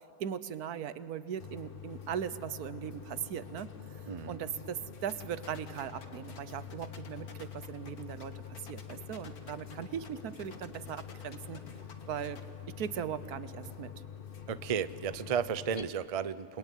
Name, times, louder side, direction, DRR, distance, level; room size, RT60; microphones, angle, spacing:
voice 1, 0.2-8.3 8.6-11.6 12.1-12.4 12.7-13.9, right 9 dB, 85° right, 14 dB, 1.4 m, -39 dB
sound 1, 1.4-15.8, left 8 dB, 40° left, 1.1 m, -46 dB
voice 2, 4.1-4.4 14.5-16.6, right 7 dB, 40° right, 14 dB, 0.5 m, -33 dB
sound 2, 5.1-12.4, left 5 dB, 80° left, 2.1 m, -52 dB
28.0 x 21.5 x 9.2 m, 2.5 s
omnidirectional pair, 1.6 m